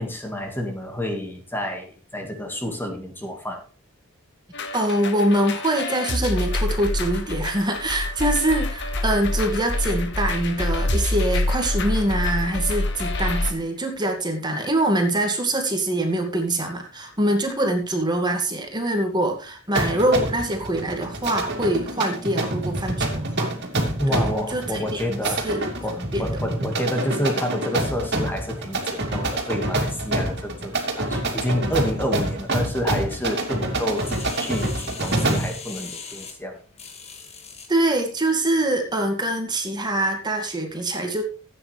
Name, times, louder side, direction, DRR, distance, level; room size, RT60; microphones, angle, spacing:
voice 1, 0.0-3.6 24.0-25.5 25.8-36.6, left 1 dB, 10° left, 3 dB, 1.9 m, -29 dB
sound 1, 4.5-13.5, left 2 dB, 55° left, 1.8 m, -26 dB
voice 2, 4.7-23.5 24.1-25.6 26.1-26.3 37.7-41.2, right 1 dB, 20° right, 3 dB, 2.0 m, -24 dB
sound 2, 19.7-35.6, right 2 dB, 50° right, 2.8 m, -27 dB
sound 3, 34.0-37.7 38.3-38.4, left 5 dB, 30° left, 2.1 m, -39 dB
15.5 x 9.2 x 3.4 m, 0.34 s
head